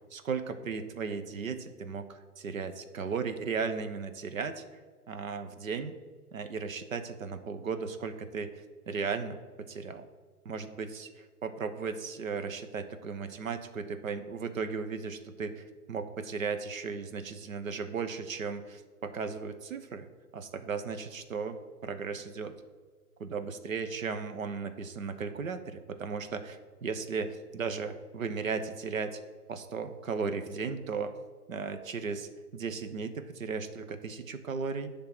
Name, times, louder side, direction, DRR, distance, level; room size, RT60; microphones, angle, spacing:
voice 1, 0.0-4.6 5.1-6.0 6.3-8.5 8.9-10.1 10.4-20.1 20.3-21.6 21.8-22.5 23.2-29.2 29.5-31.1 31.5-34.9, right 5 dB, 60° right, 9 dB, 0.9 m, -36 dB
10.5 x 3.8 x 6.0 m, 1.5 s
hypercardioid pair, 170°, 47 cm